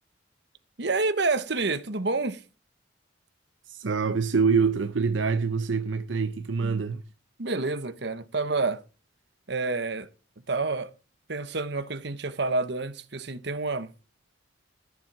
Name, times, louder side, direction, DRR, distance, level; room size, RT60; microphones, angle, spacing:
voice 1, 0.8-2.4 6.6-6.8 7.4-8.8 9.5-10.1 10.5-10.9 11.3-13.9, right 3 dB, 60° right, 1.1 m, -28 dB
voice 2, 3.7-7.0, right 5 dB, 80° right, 0.7 m, -25 dB
13.5 x 7.2 x 4.8 m
head